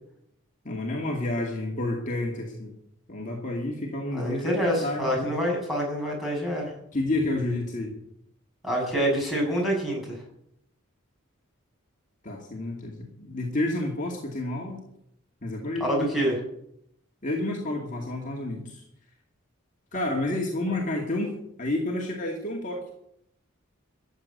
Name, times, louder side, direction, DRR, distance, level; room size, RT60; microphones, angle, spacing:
voice 1, 0.6-2.7 3.1-5.3 6.9-7.9 12.2-14.8 15.4-16.2 17.2-18.8 19.9-21.3 21.6-22.9, left 2 dB, 35° left, -1 dB, 2.3 m, -30 dB
voice 2, 4.1-6.7 8.6-10.2 15.8-16.4, equal, ahead, -3 dB, 6.8 m, -26 dB
14.0 x 8.3 x 9.3 m, 0.75 s
head